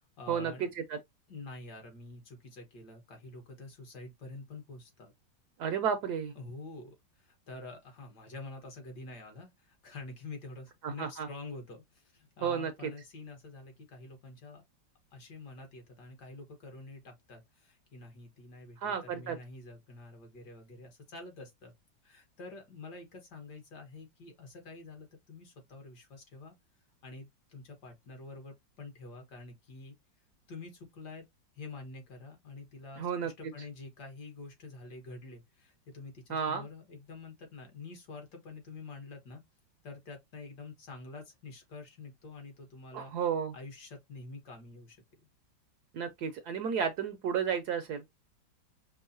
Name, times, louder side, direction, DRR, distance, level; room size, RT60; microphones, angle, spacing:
voice 1, 0.2-0.7 1.3-5.1 6.4-14.6 15.1-21.7 22.0-26.5 27.0-29.9 30.5-31.2 31.5-39.4 39.8-43.1 43.5-45.0, left 3 dB, 65° left, 1.7 m, -47 dB
voice 2, 5.6-6.3 10.8-11.3 12.4-12.9 18.8-19.4 33.0-33.3 36.3-36.7 42.9-43.5 45.9-48.0, right 7 dB, 75° right, 1.0 m, -32 dB
5.3 x 2.0 x 2.6 m
omnidirectional pair, 2.0 m